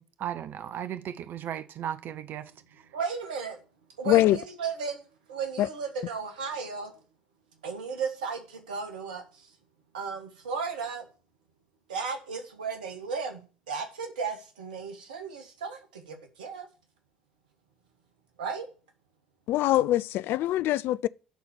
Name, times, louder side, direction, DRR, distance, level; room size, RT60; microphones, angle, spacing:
voice 1, 0.0-2.5, right 10 dB, 50° right, 0.7 m, -36 dB
voice 2, 2.9-3.6 4.0-5.0 5.3-6.9 7.6-9.5 9.9-11.1 11.9-16.7 18.4-18.7, right 5 dB, 80° right, 1.5 m, -35 dB
voice 3, 4.1-4.4 5.6-5.7 19.5-21.1, left 14 dB, 55° left, 0.3 m, -23 dB
10.5 x 4.3 x 6.9 m
figure-of-eight pair, 60°, 4 cm